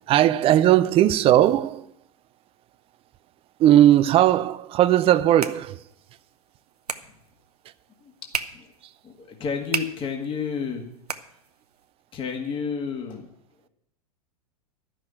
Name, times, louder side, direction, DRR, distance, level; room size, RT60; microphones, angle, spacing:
voice 1, 0.1-1.9 3.6-5.8, right 12 dB, 30° right, 0.5 m, -18 dB
sound 1, 4.9-11.9, right 5 dB, 90° right, 0.8 m, -37 dB
voice 2, 9.0-10.9 12.1-13.3, left 6 dB, 25° left, 1.8 m, -30 dB
12.5 x 6.3 x 8.7 m
hypercardioid pair, 100°, 19 cm